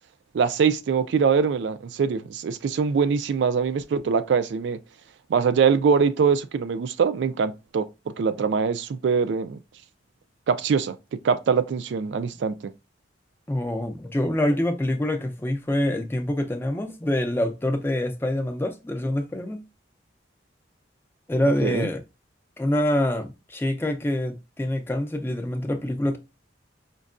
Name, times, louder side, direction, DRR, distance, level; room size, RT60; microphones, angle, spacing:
voice 1, 0.3-4.8 5.3-9.6 10.5-12.7 21.6-21.9, right 6 dB, 65° right, 0.3 m, -23 dB
voice 2, 13.5-19.6 21.3-22.0 22.6-26.2, left 1 dB, 10° left, 0.4 m, -25 dB
5.2 x 2.2 x 2.4 m
head